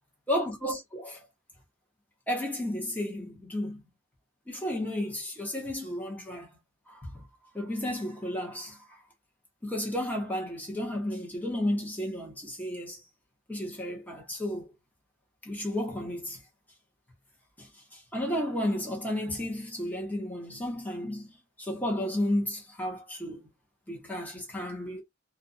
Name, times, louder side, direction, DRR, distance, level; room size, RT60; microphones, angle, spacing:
voice 1, 0.3-1.3 2.3-3.8 4.5-6.5 6.9-7.3 7.5-9.0 9.6-13.0 13.5-14.7 15.4-16.4 17.6-23.5 23.9-25.0, left 1 dB, 10° left, 0.9 m, -33 dB
2.5 x 2.2 x 2.5 m
head